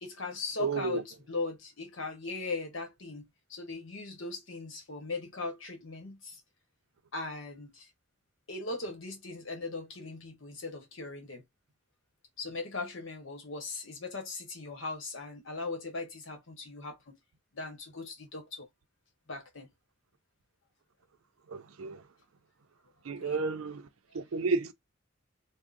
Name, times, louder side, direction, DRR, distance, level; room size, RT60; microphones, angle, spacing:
voice 1, 0.0-6.4 7.1-7.9 8.5-11.4 12.4-17.2 17.5-18.7 19.3-19.7 23.1-23.4, left 3 dB, 70° left, 1.1 m, -39 dB
voice 2, 0.6-1.0 21.5-22.1 23.0-23.9 24.1-24.7, right 4 dB, 85° right, 0.5 m, -32 dB
3.6 x 2.1 x 2.5 m
head